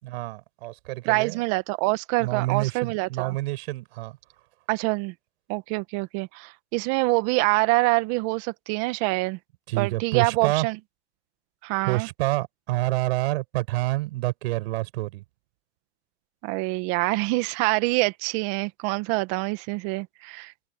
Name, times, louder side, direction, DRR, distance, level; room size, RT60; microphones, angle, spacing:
voice 1, 0.0-1.4 2.2-4.2 9.7-10.7 11.8-15.2, right 19 dB, 60° right, 5.3 m, -28 dB
voice 2, 1.1-3.3 4.7-5.1 5.5-9.4 9.8-10.8 11.6-12.1 16.4-20.5, right 24 dB, 45° right, 1.9 m, -25 dB
hypercardioid pair, 130°, 35 cm